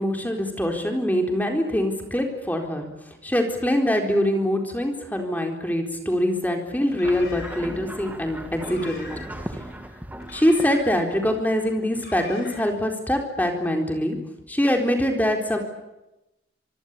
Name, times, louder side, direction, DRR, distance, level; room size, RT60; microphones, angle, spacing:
voice 1, 0.0-2.9 3.2-9.1 10.3-14.2 14.5-15.6, equal, 10° left, 3 dB, 4.1 m, -24 dB
Car, 6.8-7.8 8.5-9.5 10.2-11.2 11.9-12.8, left 3 dB, 55° left, 7.8 m, -43 dB
sound 1, 7.0-12.2, right 1 dB, 10° right, 2.1 m, -38 dB
26.0 x 23.5 x 8.5 m, 0.95 s
head